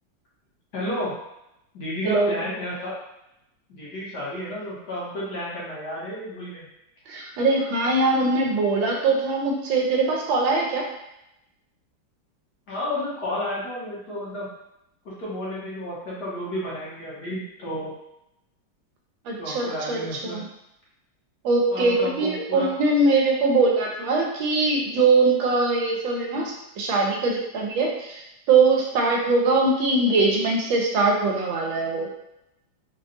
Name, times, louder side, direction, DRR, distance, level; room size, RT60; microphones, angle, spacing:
voice 1, 0.7-1.1 1.7-2.9 3.7-6.7 12.7-14.5 15.2-17.9 19.4-20.4 21.7-22.7, left 1 dB, 60° left, -8 dB, 1.6 m, -31 dB
voice 2, 2.0-2.4 7.1-10.9 19.2-20.4 21.4-32.1, right 3 dB, 80° right, 0 dB, 1.3 m, -22 dB
4.0 x 2.3 x 2.6 m, 0.86 s
omnidirectional pair, 2.1 m